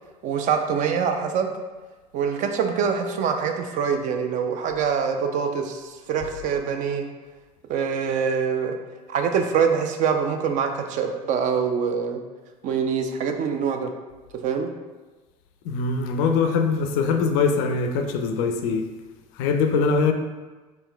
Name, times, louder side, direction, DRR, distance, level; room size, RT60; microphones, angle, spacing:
voice 1, 0.2-1.5 2.1-7.0 7.7-8.8 9.1-12.2 12.6-13.9 14.4-14.7, right 6 dB, 40° right, 5 dB, 0.4 m, -24 dB
voice 2, 15.6-18.9 19.3-20.1, left 5 dB, 55° left, 5 dB, 0.4 m, -22 dB
4.4 x 2.9 x 2.2 m, 1.3 s
figure-of-eight pair, 65°, 20 cm